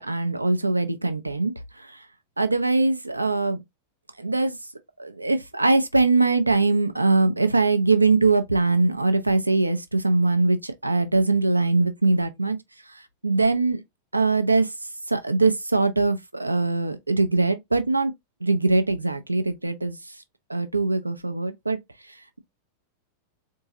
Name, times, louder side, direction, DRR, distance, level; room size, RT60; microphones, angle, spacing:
voice 1, 0.0-1.9 2.4-3.6 4.2-4.6 5.0-12.6 13.2-13.8 14.1-14.7 15.1-18.1 18.4-20.0 20.5-21.8, right 3 dB, 85° right, 0.5 m, -22 dB
3.8 x 2.7 x 2.7 m
figure-of-eight pair, 90°, 0 cm